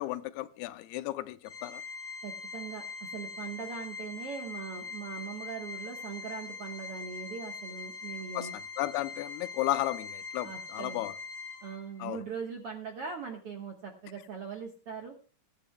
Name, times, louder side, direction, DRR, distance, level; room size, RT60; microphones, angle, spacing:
voice 1, 0.0-1.8 8.3-11.1 12.0-12.2, left 16 dB, 85° left, 2.7 m, -34 dB
Organ, 1.4-12.0, left 4 dB, 30° left, 5.3 m, -42 dB
voice 2, 2.2-8.5 10.4-11.0 11.6-15.1, right 6 dB, 65° right, 1.5 m, -41 dB
22.5 x 10.0 x 2.2 m
omnidirectional pair, 4.4 m